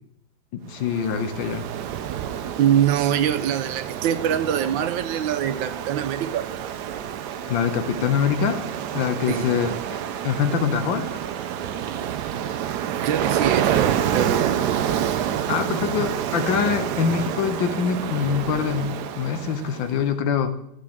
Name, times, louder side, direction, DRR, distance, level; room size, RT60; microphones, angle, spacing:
voice 1, 0.5-1.7 7.5-8.6 8.9-11.1 15.5-20.5, left 7 dB, 85° left, 1.6 m, -24 dB
Ocean, 0.8-19.9, right 9 dB, 70° right, 1.1 m, -28 dB
voice 2, 2.6-6.5 9.3-9.5 13.0-14.5, right 10 dB, 90° right, 1.4 m, -23 dB
13.0 x 7.4 x 3.6 m
omnidirectional pair, 2.0 m